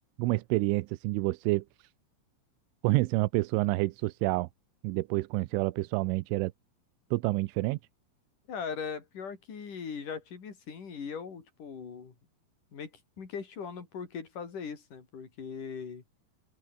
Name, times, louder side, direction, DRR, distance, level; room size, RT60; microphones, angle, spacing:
voice 1, 0.2-1.6 2.8-4.5 4.8-6.5 7.1-7.8, right 21 dB, 85° right, 3.2 m, -28 dB
voice 2, 8.5-12.1 12.7-16.0, left 6 dB, 45° left, 5.3 m, -40 dB
open air
omnidirectional pair, 5.7 m